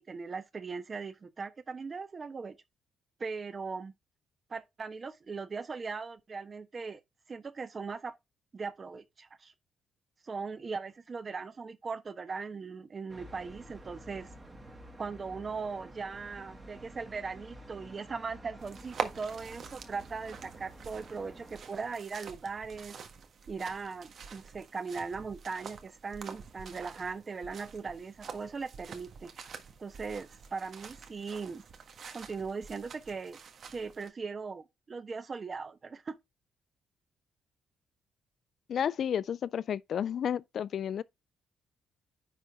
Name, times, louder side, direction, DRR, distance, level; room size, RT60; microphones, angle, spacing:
voice 1, 0.0-2.5 3.2-3.9 4.5-7.0 7.3-8.1 8.5-9.5 10.2-14.3 15.0-23.0 23.5-29.3 29.8-31.6 32.1-33.4 33.7-36.2, right 4 dB, 35° right, 1.0 m, -39 dB
sound 1, 13.1-21.6, right 1 dB, 15° right, 2.1 m, -50 dB
sound 2, 18.6-34.1, right 6 dB, 55° right, 1.5 m, -46 dB
voice 2, 38.7-41.0, left 8 dB, 60° left, 0.3 m, -32 dB
10.0 x 3.9 x 3.5 m
cardioid pair, 90°, 0 cm